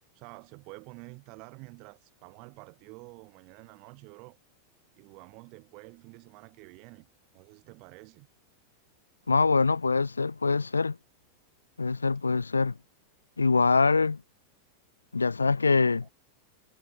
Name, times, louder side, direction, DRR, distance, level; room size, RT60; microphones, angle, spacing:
voice 1, 0.1-4.4 5.0-7.1 7.3-8.3, right 30 dB, 45° right, 1.9 m, -49 dB
voice 2, 9.3-11.0 11.8-12.7 13.4-14.2 15.1-16.1, left 4 dB, 80° left, 0.6 m, -24 dB
figure-of-eight pair, 90°, 0 cm